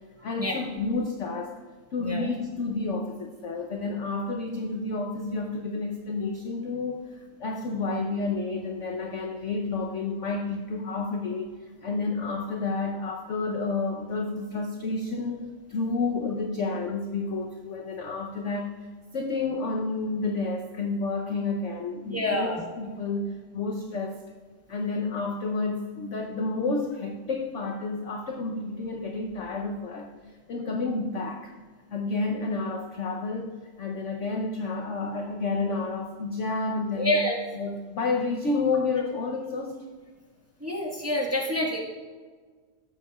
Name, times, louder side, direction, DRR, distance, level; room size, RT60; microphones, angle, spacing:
voice 1, 0.2-1.6 1.9-24.2 24.7-31.5 31.9-37.2 37.5-39.9, left 3 dB, 60° left, 2 dB, 0.8 m, -30 dB
voice 2, 22.0-22.6 37.0-37.4 40.6-41.8, left 1 dB, 10° right, -3 dB, 1.2 m, -27 dB
14.0 x 8.1 x 2.4 m, 1.5 s
omnidirectional pair, 2.0 m